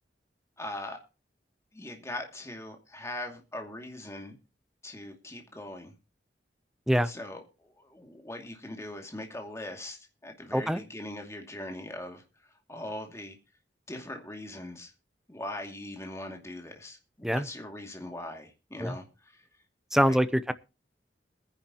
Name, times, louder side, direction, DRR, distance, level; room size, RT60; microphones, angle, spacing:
voice 1, 0.6-1.0 1.7-4.4 4.8-5.9 7.0-12.2 12.7-13.4 13.9-14.9 15.3-19.4 20.0-20.2, left 1 dB, 15° left, 2.5 m, -41 dB
voice 2, 10.5-10.8 17.2-17.5 18.8-19.0 19.9-20.5, equal, 5° right, 0.7 m, -24 dB
21.0 x 10.5 x 2.9 m
head